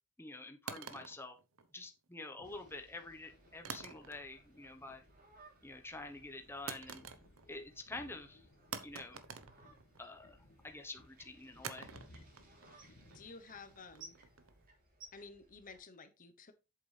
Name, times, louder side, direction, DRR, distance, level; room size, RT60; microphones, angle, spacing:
voice 1, 0.2-1.4 1.7-5.0 5.6-7.0 7.5-8.5 8.8-9.2 10.0-11.9, left 2 dB, 10° left, 0.9 m, -48 dB
sound 1, 0.7-2.1 3.6-4.5 4.8-5.3 6.7-7.6 7.9-8.0 8.7-10.2 11.6-14.7, right 6 dB, 70° right, 0.9 m, -48 dB
sound 2, 2.4-14.6, left 1 dB, 70° left, 1.6 m, -64 dB
sound 3, 2.4-15.8, right 3 dB, 45° right, 3.2 m, -62 dB
voice 2, 13.1-14.2 15.1-16.5, left 4 dB, 40° left, 0.9 m, -53 dB
8.2 x 7.3 x 3.3 m
head